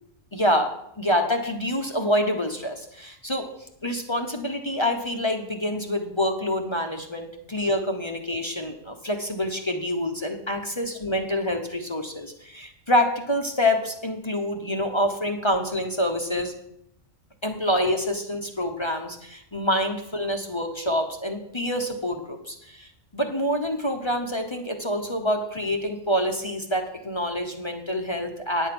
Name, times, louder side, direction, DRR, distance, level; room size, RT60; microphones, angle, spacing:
voice 1, 0.3-0.7 1.0-16.5 17.4-28.7, left 1 dB, 25° left, 4 dB, 0.8 m, -26 dB
9.9 x 7.3 x 5.9 m, 0.73 s
omnidirectional pair, 1.3 m